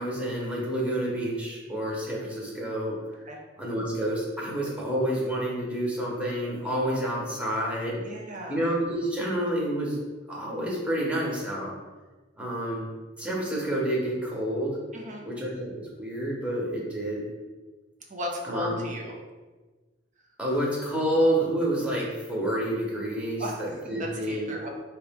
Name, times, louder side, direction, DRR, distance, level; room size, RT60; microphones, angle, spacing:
voice 1, 0.0-3.0 3.6-8.0 8.5-10.0 10.3-11.7 12.4-12.9 13.2-14.8 15.3-17.2 18.4-18.9 20.4-24.5, right 1 dB, 5° right, -4 dB, 1.1 m, -29 dB
voice 2, 8.0-8.6 14.9-15.2 18.1-19.1 23.4-23.6 24.3-24.7, left 1 dB, 45° right, 0 dB, 0.8 m, -35 dB
4.8 x 3.0 x 3.6 m, 1.3 s
head